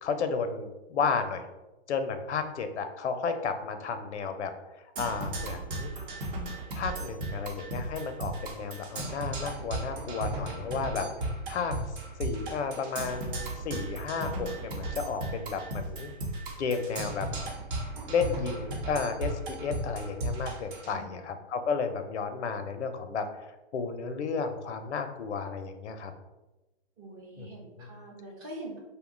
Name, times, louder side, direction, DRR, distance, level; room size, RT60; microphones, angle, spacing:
voice 1, 0.0-1.5 1.9-4.5 5.0-5.9 6.8-11.8 12.2-16.1 16.6-17.3 18.1-23.3 23.7-26.1 27.4-27.5 27.8-27.9, left 5 dB, 90° left, 8 dB, 0.5 m, -32 dB
Percussion, 5.0-20.9, right 2 dB, 50° right, 0.8 m, -36 dB
voice 2, 20.9-21.3 27.0-28.8, right 1 dB, 20° right, -2 dB, 0.4 m, -44 dB
2.7 x 2.2 x 3.7 m, 1.1 s
hypercardioid pair, 140°, 33 cm